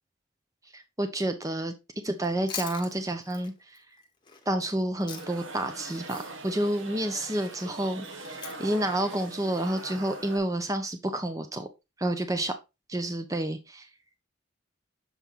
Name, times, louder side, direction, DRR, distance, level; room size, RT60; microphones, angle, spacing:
voice 1, 0.7-1.7 2.0-3.5 4.5-11.7 12.0-12.6 12.9-13.9, right 1 dB, 15° right, 0.7 m, -29 dB
Chewing mastication, 2.1-5.6 5.9-10.2, left 6 dB, 20° left, 1.1 m, -44 dB
sound 1, 5.1-10.4, right 3 dB, 70° right, 1.1 m, -42 dB
6.9 x 4.5 x 3.6 m
head